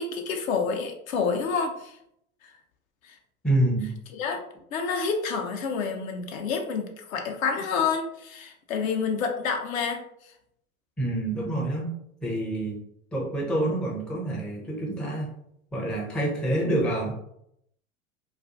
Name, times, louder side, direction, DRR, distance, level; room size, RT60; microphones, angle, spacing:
voice 1, 0.0-2.0 2.4-2.5 3.0-3.2 4.1-4.4 4.7-10.0, left 5 dB, 70° left, 4 dB, 0.6 m, -28 dB
voice 2, 3.4-3.9 11.0-11.9 12.2-12.8 13.1-15.3 15.7-17.1, right 1 dB, ahead, -3 dB, 0.4 m, -27 dB
2.4 x 2.4 x 2.5 m, 0.74 s
figure-of-eight pair, 85°, 43 cm